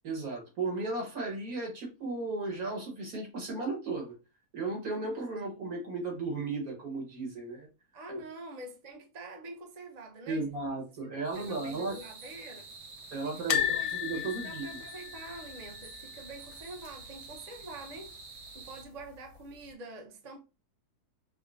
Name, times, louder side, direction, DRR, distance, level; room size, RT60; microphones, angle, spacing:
voice 1, 0.0-4.1 4.5-7.7 10.3-12.0 13.1-14.8, right 3 dB, 65° right, 1.9 m, -35 dB
voice 2, 7.9-10.4 11.1-12.7 13.2-18.2 18.5-20.4, right 2 dB, 45° right, 0.5 m, -46 dB
sound 1, 11.3-18.8, right 4 dB, 85° right, 1.5 m, -48 dB
sound 2, 13.5-16.5 16.8-17.0 17.3-17.4 18.6-19.1 19.7-19.8, left 10 dB, 90° left, 1.2 m, -33 dB
5.5 x 2.1 x 2.4 m
omnidirectional pair, 1.7 m